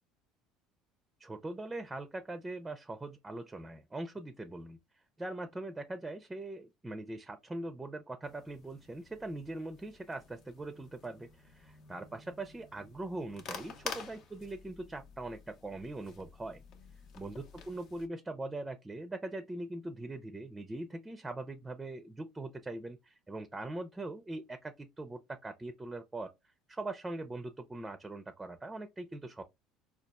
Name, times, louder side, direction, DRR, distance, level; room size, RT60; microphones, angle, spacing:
voice 1, 1.2-4.8 5.2-16.6 17.1-26.3 26.7-29.4, right 2 dB, 15° right, 0.4 m, -41 dB
sound 1, 8.2-18.1, left 5 dB, 60° left, 0.7 m, -49 dB
4.0 x 2.3 x 2.2 m
supercardioid pair, 90°, 0 cm